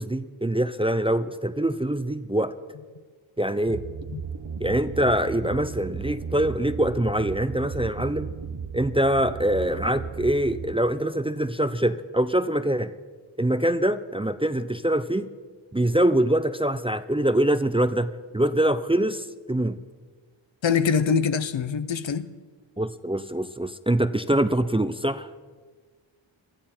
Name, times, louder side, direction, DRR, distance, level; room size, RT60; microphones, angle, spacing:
voice 1, 0.0-2.5 3.4-3.8 4.6-8.3 8.7-12.9 13.4-15.3 15.7-19.8 22.8-25.3, right 1 dB, 10° right, 0.5 m, -24 dB
sound 1, 3.7-10.7, right 6 dB, 50° right, 0.9 m, -35 dB
voice 2, 20.6-22.3, left 6 dB, 65° left, 0.9 m, -24 dB
23.0 x 13.5 x 4.4 m
wide cardioid pair, 60°, 50 cm